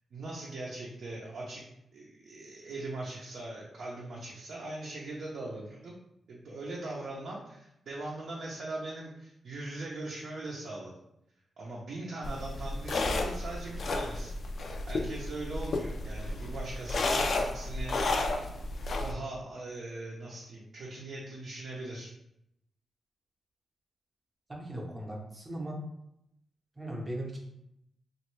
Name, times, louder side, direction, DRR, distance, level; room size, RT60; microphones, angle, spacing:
voice 1, 0.0-1.6 1.9-6.0 6.3-10.9 11.6-14.3 14.9-18.2 19.0-22.1, right 2 dB, 65° right, -5 dB, 0.6 m, -40 dB
sound 1, 12.2-19.1, left 2 dB, 55° left, 0.3 m, -32 dB
voice 2, 24.5-25.8 26.8-27.4, right 1 dB, 20° right, -1 dB, 0.7 m, -38 dB
3.0 x 2.5 x 3.1 m, 0.79 s
wide cardioid pair, 135°, 0 cm